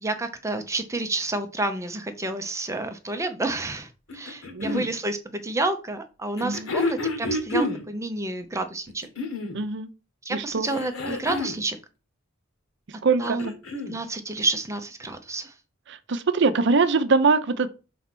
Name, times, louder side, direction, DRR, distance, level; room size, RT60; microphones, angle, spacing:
voice 1, 0.0-9.1 10.2-11.8 13.2-13.5 13.9-15.5, right 2 dB, 15° right, 0.7 m, -29 dB
sound 1, 4.1-4.9 6.4-7.8 8.9-9.6 10.6-11.6 13.0-14.0 15.1-15.2, left 2 dB, 85° left, 1.7 m, -29 dB
voice 2, 4.5-4.8 6.4-6.7 9.5-9.9 10.3-10.7 13.0-13.6 15.9-17.7, right 4 dB, 60° right, 0.6 m, -23 dB
5.4 x 4.2 x 6.0 m
head